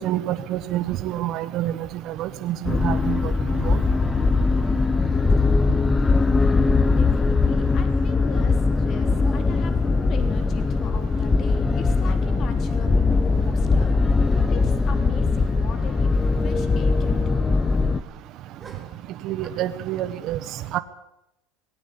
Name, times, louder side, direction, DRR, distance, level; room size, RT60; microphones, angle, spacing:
voice 1, 0.0-1.7 2.1-3.2 3.6-3.8 19.2-20.4 20.7-20.8, right 13 dB, 35° right, 11 dB, 1.0 m, -27 dB
sound 1, 2.6-18.0, left 4 dB, 10° left, 0.7 m, -21 dB
voice 2, 6.9-13.9 14.2-17.5, left 6 dB, 30° left, 8 dB, 3.2 m, -39 dB
sound 2, 8.2-8.9 9.2-10.0 11.4-11.5 11.8-12.3 12.6-12.7 13.8-14.3 14.9-15.2 15.4-15.5 18.6-19.5, right 4 dB, 10° right, 2.8 m, -50 dB
18.5 x 17.5 x 8.4 m, 0.84 s
cardioid pair, 170°, 0 cm